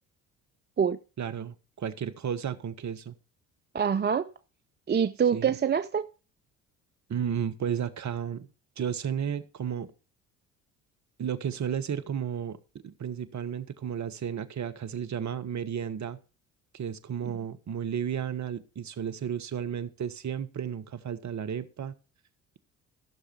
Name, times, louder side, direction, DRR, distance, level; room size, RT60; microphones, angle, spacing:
voice 1, 1.2-3.1 5.3-5.5 7.1-8.5 8.8-9.9 11.2-12.6 12.8-16.2 16.7-21.9, right 8 dB, 40° right, 1.3 m, -33 dB
voice 2, 3.7-4.3 4.9-6.1 17.2-17.3, right 7 dB, 25° right, 0.6 m, -25 dB
15.0 x 6.6 x 4.4 m
hypercardioid pair, 55°, 41 cm